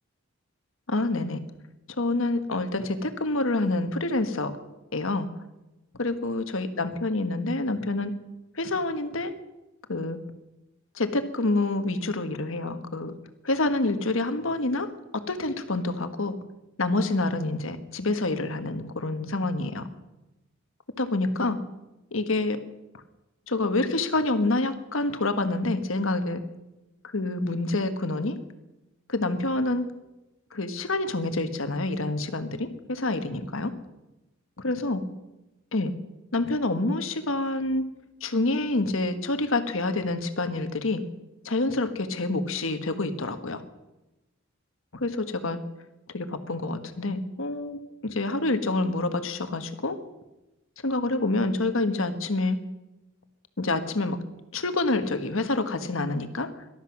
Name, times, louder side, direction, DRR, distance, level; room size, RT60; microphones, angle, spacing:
voice 1, 0.9-1.4 2.0-4.6 4.9-5.3 6.0-8.1 8.5-9.3 9.9-10.2 10.9-13.1 13.4-14.9 15.1-16.3 16.8-19.8 21.0-21.6 22.1-22.6 23.5-26.4 27.1-28.4 29.1-29.8 30.5-33.7 34.6-35.0 35.7-35.9 36.3-37.9 38.2-41.0 41.4-43.6 44.9-45.6 46.1-50.0 50.8-52.6 53.6-54.2 54.5-56.5, left 2 dB, 70° left, 9 dB, 1.4 m, -27 dB
18.5 x 12.5 x 6.0 m, 1.0 s
head